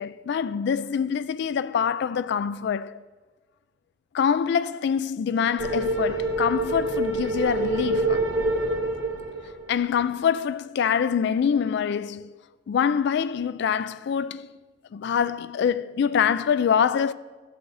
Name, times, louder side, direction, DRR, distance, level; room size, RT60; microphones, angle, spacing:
voice 1, 0.0-3.0 4.1-8.2 9.7-12.3 12.7-14.5 14.9-17.1, left 7 dB, 60° left, 0.3 m, -25 dB
sound 1, 5.6-10.0, right 2 dB, 85° right, 1.2 m, -26 dB
13.0 x 7.7 x 4.0 m
head